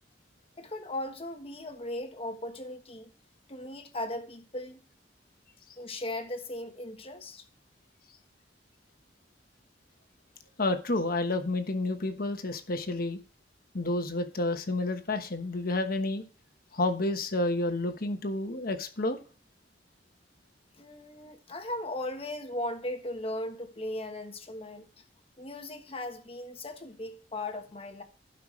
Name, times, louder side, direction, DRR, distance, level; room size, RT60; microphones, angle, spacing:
voice 1, 0.6-3.1 3.5-4.8 5.8-7.4 20.8-24.9 25.4-28.0, left 1 dB, 35° left, 1.3 m, -37 dB
voice 2, 10.6-13.2 13.7-16.2 16.7-19.2, left 2 dB, 55° left, 1.2 m, -30 dB
15.5 x 5.8 x 3.2 m
head